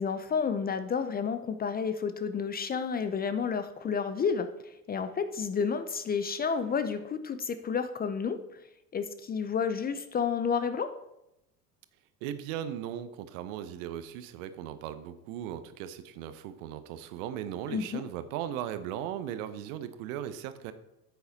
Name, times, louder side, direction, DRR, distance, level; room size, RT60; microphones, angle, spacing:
voice 1, 0.0-4.5 4.9-8.4 8.9-10.9 17.7-18.0, left 6 dB, 20° left, 11 dB, 0.6 m, -30 dB
voice 2, 12.2-20.7, right 10 dB, 55° right, 12 dB, 0.9 m, -37 dB
9.7 x 8.3 x 4.1 m, 0.88 s
figure-of-eight pair, 70°, 47 cm